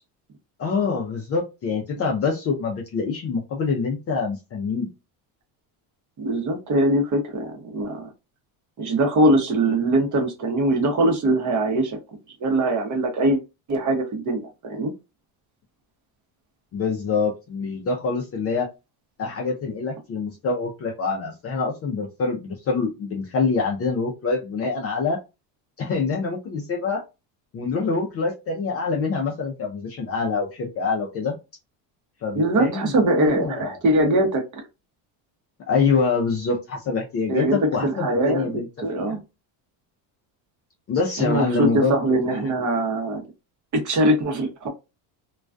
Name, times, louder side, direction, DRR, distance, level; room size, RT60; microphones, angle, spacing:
voice 1, 0.6-4.9 16.7-18.7 19.2-25.2 25.8-27.0 27.5-31.4 32.2-32.9 33.2-33.7 35.7-38.7 38.9-39.2 40.9-42.5, left 4 dB, 30° left, 0 dB, 0.4 m, -25 dB
voice 2, 6.2-8.1 8.8-12.0 12.4-13.4 13.7-14.9 32.3-34.4 37.3-39.2 41.2-43.2 43.7-44.7, right 1 dB, 35° right, 2 dB, 0.8 m, -22 dB
2.3 x 2.2 x 2.4 m, 0.26 s
cardioid pair, 125°, 50 cm